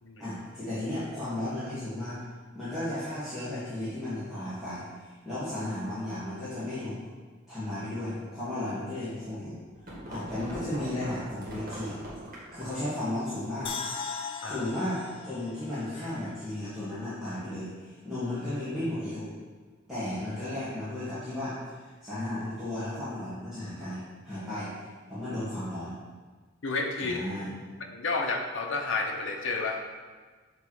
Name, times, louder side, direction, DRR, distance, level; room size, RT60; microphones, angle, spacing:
voice 1, 0.2-2.2 2.5-7.0 7.5-9.6 10.1-12.0 12.5-13.7 14.4-19.2 19.9-26.0 27.0-27.5, left 1 dB, ahead, -15 dB, 1.7 m, -34 dB
sound 1, 9.6-13.0, right 1 dB, 45° right, 1.6 m, -42 dB
sound 2, 13.6-16.9 17.2-17.3, left 5 dB, 25° left, 0.4 m, -39 dB
voice 2, 26.6-27.2 27.9-29.9, left 3 dB, 70° left, 2 dB, 0.8 m, -31 dB
6.7 x 3.1 x 4.7 m, 1.4 s
head